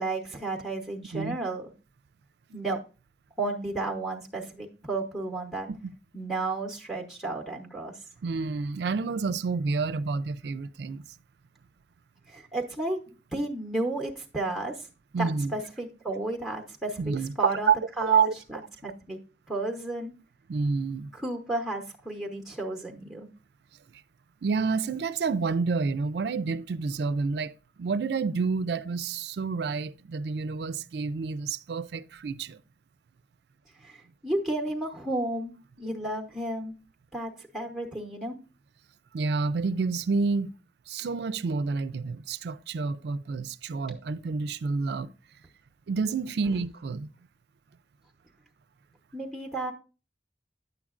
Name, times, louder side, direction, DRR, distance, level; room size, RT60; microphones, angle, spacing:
voice 1, 0.0-1.7 2.5-2.8 3.4-5.7 6.1-7.9 12.3-13.0 13.3-14.9 15.2-19.2 19.5-20.1 21.1-23.3 33.8-35.5 35.8-36.7 37.1-38.4 49.1-49.7, right 2 dB, ahead, 0.8 m, -32 dB
voice 2, 8.2-11.0 15.1-15.5 17.0-17.8 18.0-18.3 20.5-21.1 24.4-27.5 27.8-32.6 39.1-40.5 40.9-45.1 45.9-47.1, right 5 dB, 65° right, 0.4 m, -28 dB
9.4 x 7.3 x 2.4 m
head